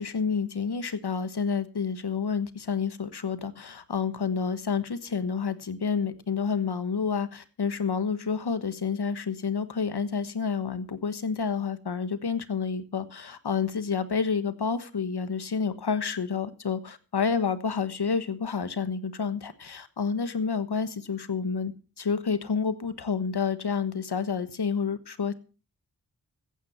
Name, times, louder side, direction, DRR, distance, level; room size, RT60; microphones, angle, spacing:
voice 1, 0.0-21.7 22.0-25.3, left 5 dB, 75° left, 12 dB, 1.4 m, -29 dB
14.5 x 9.4 x 5.8 m, 0.36 s
cardioid pair, 40°, 40 cm